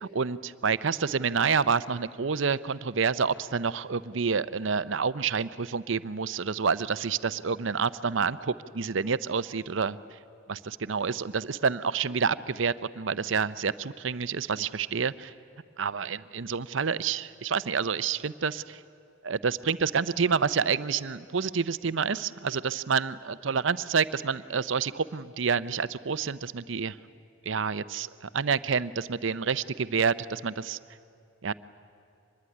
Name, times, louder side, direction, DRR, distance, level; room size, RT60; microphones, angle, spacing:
voice 1, 0.0-10.0 10.5-15.3 15.8-18.8 19.2-27.0 27.5-30.8 31.4-31.5, right 5 dB, 65° right, 15 dB, 0.7 m, -28 dB
25.0 x 21.0 x 9.9 m, 2.6 s
head